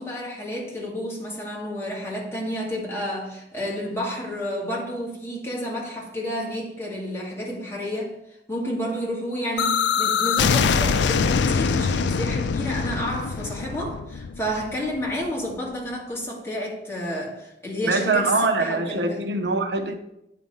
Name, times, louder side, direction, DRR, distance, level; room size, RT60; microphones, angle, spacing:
voice 1, 0.0-8.2 8.5-18.3 18.6-19.2, equal, 15° left, 2.2 m, -30 dB
sound 1, 9.6-15.3, left 6 dB, 85° left, 0.4 m, -23 dB
voice 2, 17.8-20.0, right 3 dB, 75° right, 0.9 m, -23 dB
9.2 x 5.0 x 5.4 m
head